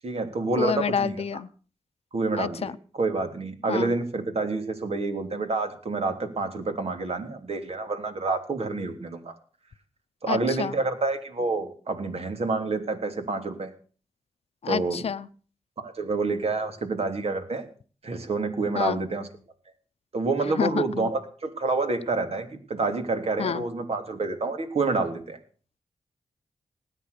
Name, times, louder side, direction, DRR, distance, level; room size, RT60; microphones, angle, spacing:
voice 1, 0.0-1.1 2.1-9.3 10.2-13.7 14.7-15.0 15.8-17.7 18.0-19.3 20.1-25.4, right 3 dB, 60° right, 6 dB, 3.3 m, -28 dB
voice 2, 0.6-1.5 2.4-2.7 3.7-3.9 10.3-10.7 14.6-15.3 18.7-19.0 20.6-21.1 23.4-23.6, left 7 dB, 60° left, 12 dB, 0.8 m, -28 dB
19.0 x 9.3 x 6.9 m, 0.41 s
cardioid pair, 70°, 11 cm